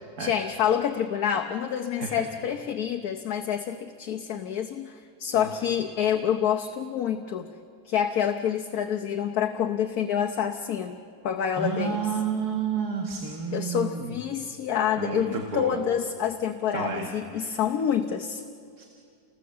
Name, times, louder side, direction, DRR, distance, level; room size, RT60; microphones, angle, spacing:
voice 1, 0.2-7.5 7.8-11.0 11.2-12.0 13.5-18.4, left 9 dB, 70° left, 4 dB, 1.3 m, -27 dB
voice 2, 11.6-14.2 15.0-15.8 16.7-17.6 18.8-18.9, right 6 dB, 70° right, 2 dB, 2.3 m, -31 dB
29.0 x 19.5 x 7.7 m, 2.3 s
omnidirectional pair, 1.7 m